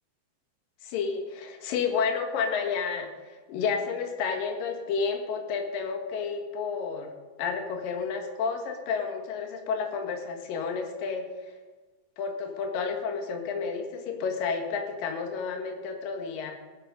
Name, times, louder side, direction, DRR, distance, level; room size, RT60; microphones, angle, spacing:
voice 1, 0.8-7.1 7.4-11.3 12.2-16.5, left 5 dB, 70° left, 4 dB, 3.1 m, -31 dB
18.0 x 10.5 x 5.2 m, 1.3 s
omnidirectional pair, 4.4 m